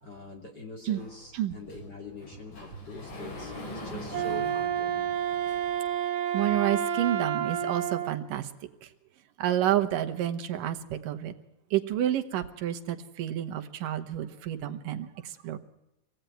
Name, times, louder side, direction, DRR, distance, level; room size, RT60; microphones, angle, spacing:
voice 1, 0.0-5.1, left 2 dB, 30° left, 1 dB, 3.2 m, -44 dB
Sliding door, 1.0-5.9, left 2 dB, 90° left, 6.2 m, -43 dB
Wind instrument woodwind instrument, 4.1-8.2, right 9 dB, 55° right, 2.3 m, -29 dB
voice 2, 6.3-8.5 8.8-8.9 9.4-11.3 11.7-15.6, right 12 dB, 85° right, 7 dB, 2.9 m, -29 dB
24.5 x 17.5 x 9.2 m, 0.91 s
omnidirectional pair, 3.7 m